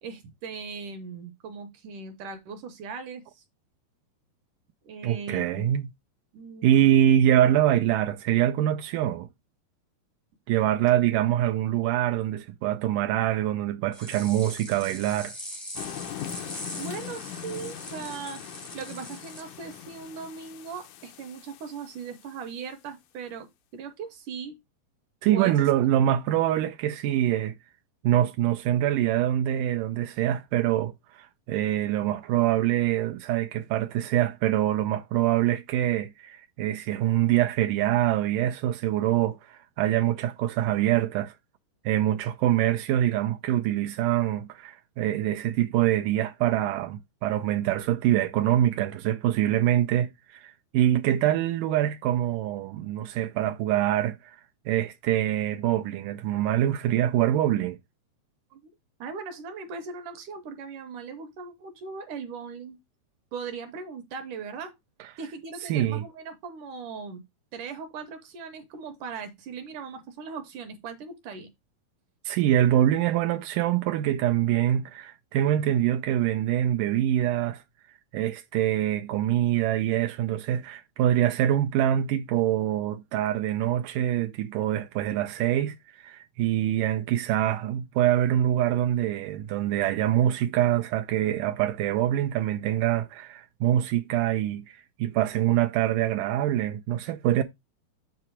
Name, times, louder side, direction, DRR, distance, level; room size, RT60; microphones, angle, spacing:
voice 1, 0.0-3.4 4.8-5.7 6.3-6.9 16.8-24.6 25.3-25.6 58.5-58.7 59.0-62.8 63.3-64.7 65.2-67.2 67.5-71.5, right 5 dB, 70° right, 2.1 m, -39 dB
voice 2, 5.0-5.9 6.6-9.3 10.5-15.3 25.2-27.6 28.0-41.3 41.9-54.4 54.7-57.8 65.6-66.0 72.3-77.6 78.1-97.4, right 12 dB, 90° right, 1.8 m, -25 dB
sound 1, 13.9-19.4, equal, 25° left, 0.4 m, -41 dB
sound 2, 15.8-22.4, left 11 dB, 85° left, 1.7 m, -41 dB
8.0 x 2.8 x 6.0 m
omnidirectional pair, 4.5 m